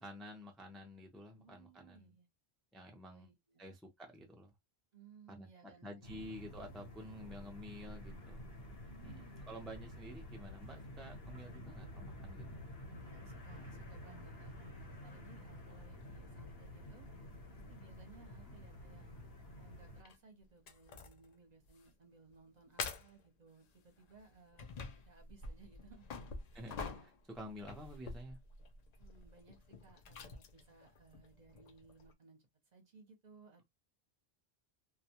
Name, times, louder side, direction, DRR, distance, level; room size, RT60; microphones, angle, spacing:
voice 1, 0.0-2.1 2.7-3.3 3.6-4.5 5.3-8.4 9.0-12.6 26.5-28.4, equal, ahead, 0.4 m, -50 dB
voice 2, 1.3-2.3 3.1-3.7 4.9-6.4 8.9-9.6 11.6-11.8 12.9-17.1 17.5-19.1 19.6-24.7 25.0-26.2 29.0-32.4 32.7-33.7, right 4 dB, 45° right, 0.8 m, -61 dB
sound 1, 6.0-20.0, left 1 dB, 75° left, 1.1 m, -50 dB
sound 2, 20.0-20.2 20.7-21.3 21.7-21.9 22.3-22.4 22.8-23.3 24.0-32.1, left 4 dB, 55° left, 0.5 m, -47 dB
2.3 x 2.2 x 2.8 m
omnidirectional pair, 1.0 m